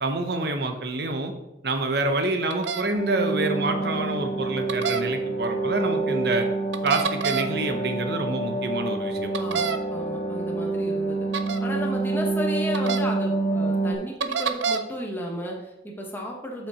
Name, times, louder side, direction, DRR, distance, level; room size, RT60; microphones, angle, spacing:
voice 1, 0.0-1.3 1.6-6.5 6.8-9.4, right 2 dB, 60° right, 6 dB, 0.9 m, -27 dB
sound 1, 2.5-2.8 4.7-5.0 6.7-7.5 9.3-9.8 11.3-11.6 12.7-13.0 14.2-14.8, right 6 dB, 80° right, 0.6 m, -26 dB
sound 2, 2.9-13.9, right 2 dB, 50° left, 1.2 m, -27 dB
voice 2, 9.4-11.3 11.6-16.7, equal, 10° left, 0 dB, 1.1 m, -34 dB
7.3 x 5.7 x 5.0 m, 0.93 s
head